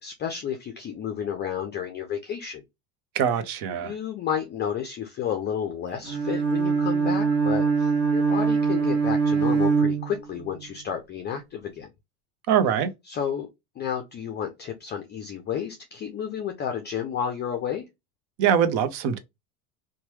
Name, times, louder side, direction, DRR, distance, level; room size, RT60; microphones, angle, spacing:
voice 1, 0.0-2.6 3.8-11.9 13.0-13.5 13.8-17.8, left 8 dB, 25° left, 0.4 m, -31 dB
voice 2, 3.1-3.9 12.5-12.9 18.4-19.2, right 8 dB, 55° right, 0.7 m, -23 dB
Bowed string instrument, 6.0-10.6, right 5 dB, 30° right, 1.1 m, -23 dB
3.0 x 2.2 x 3.1 m
supercardioid pair, 120°, 44 cm